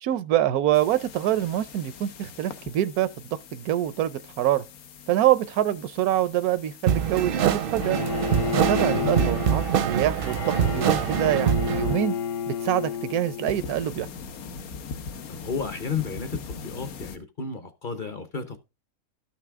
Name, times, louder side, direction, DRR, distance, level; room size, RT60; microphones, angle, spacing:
voice 1, 0.0-3.1 3.5-4.6 5.1-8.0 8.5-12.2 12.5-14.1, right 12 dB, 85° right, 1.1 m, -25 dB
sound 1, 0.7-17.2, left 5 dB, 80° left, 1.3 m, -43 dB
sound 2, 6.9-11.9, right 8 dB, 60° right, 0.6 m, -24 dB
Bowed string instrument, 7.8-13.9, left 7 dB, 60° left, 1.1 m, -31 dB
voice 2, 8.7-9.3 15.3-18.6, left 5 dB, 45° left, 0.8 m, -33 dB
12.0 x 5.9 x 3.5 m
omnidirectional pair, 1.5 m